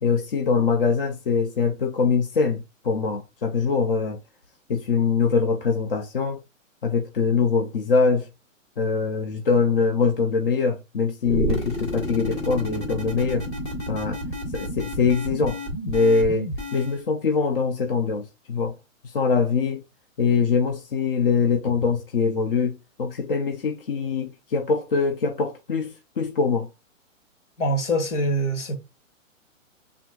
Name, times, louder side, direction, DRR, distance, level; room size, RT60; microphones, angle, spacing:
voice 1, 0.0-4.2 4.7-6.4 6.8-8.3 8.8-13.5 13.9-14.2 14.5-15.6 15.9-18.7 19.0-19.8 20.2-26.7, left 5 dB, 45° left, 0.6 m, -23 dB
sound 1, 11.2-17.0, equal, 20° left, 1.2 m, -30 dB
voice 2, 27.6-28.8, right 1 dB, 60° left, 1.8 m, -24 dB
6.0 x 3.5 x 2.3 m
hypercardioid pair, 170°, 40 cm